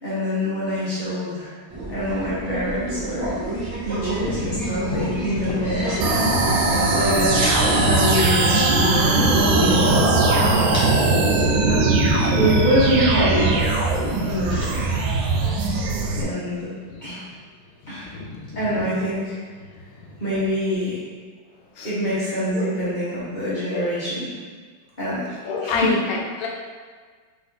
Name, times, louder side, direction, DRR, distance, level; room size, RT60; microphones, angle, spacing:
voice 1, 0.0-1.5 1.9-3.3 3.8-6.3 6.9-10.1 11.6-11.9 12.3-13.7 14.2-14.8 16.2-16.7 17.0-17.2 17.9-18.1 18.5-19.3 20.2-21.0 21.8-24.3 25.0-25.3 25.6-25.8, equal, 30° left, -11 dB, 1.0 m, -25 dB
sound 1, 1.7-16.2, right 1 dB, 20° right, 0.7 m, -30 dB
sound 2, 4.2-14.0 14.6-14.7 15.4-15.6 15.9-16.1 16.8-17.3 17.6-21.0, left 3 dB, 90° left, 1.5 m, -34 dB
sound 3, 6.0-16.2, right 3 dB, 75° right, 1.3 m, -20 dB
voice 2, 25.4-26.5, left 4 dB, 70° left, -1 dB, 0.9 m, -26 dB
3.5 x 3.4 x 4.0 m, 1.5 s
omnidirectional pair, 2.3 m